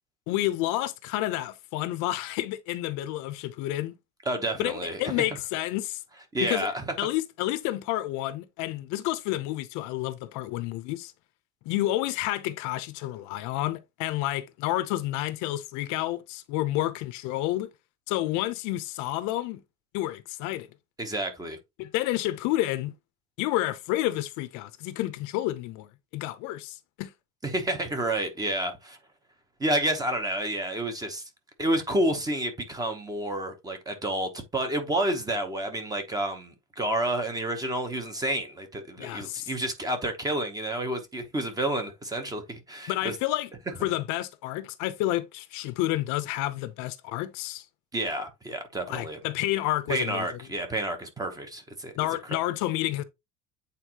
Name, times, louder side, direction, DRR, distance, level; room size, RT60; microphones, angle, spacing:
voice 1, 0.3-3.9 4.6-6.0 6.4-6.7 7.0-11.1 11.6-17.7 18.1-19.6 19.9-20.7 21.8-22.9 23.4-27.1 39.0-39.5 42.9-43.5 43.8-47.6 48.9-50.3 52.0-53.0, left 15 dB, 55° left, 0.7 m, -30 dB
voice 2, 4.3-5.0 6.3-6.8 21.0-21.6 27.4-29.0 29.6-31.3 31.6-43.1 47.9-49.2 49.9-51.9, right 1 dB, 10° right, 0.9 m, -30 dB
8.3 x 4.2 x 2.9 m
cardioid pair, 180°, 34 cm